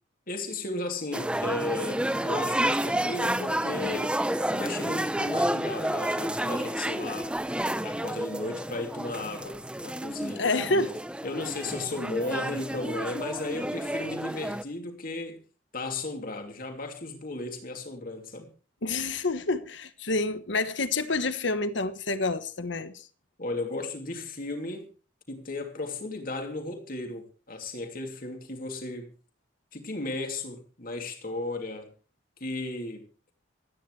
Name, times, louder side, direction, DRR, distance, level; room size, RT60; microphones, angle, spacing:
voice 1, 0.3-4.2 4.5-7.3 7.8-10.7 11.2-15.4 15.7-18.5 23.4-24.9 25.3-29.1 29.7-31.9 32.4-33.1, left 2 dB, 45° left, 2.9 m, -35 dB
sound 1, 1.1-14.6, right 1 dB, 5° right, 0.7 m, -30 dB
voice 2, 10.4-11.0 18.8-22.9, left 3 dB, 65° left, 1.3 m, -28 dB
26.5 x 10.0 x 3.3 m
head